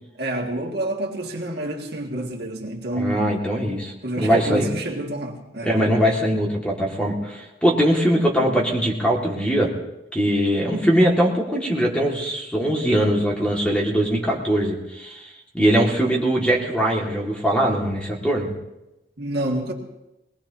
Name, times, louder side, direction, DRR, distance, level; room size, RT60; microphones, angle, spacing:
voice 1, 0.2-3.4 4.0-5.7 8.4-8.7 19.2-19.7, right 1 dB, 55° right, 2.0 m, -28 dB
voice 2, 2.9-4.7 5.6-9.7 10.1-15.3 15.5-18.5, equal, 5° left, 2.0 m, -21 dB
22.5 x 19.0 x 2.9 m
head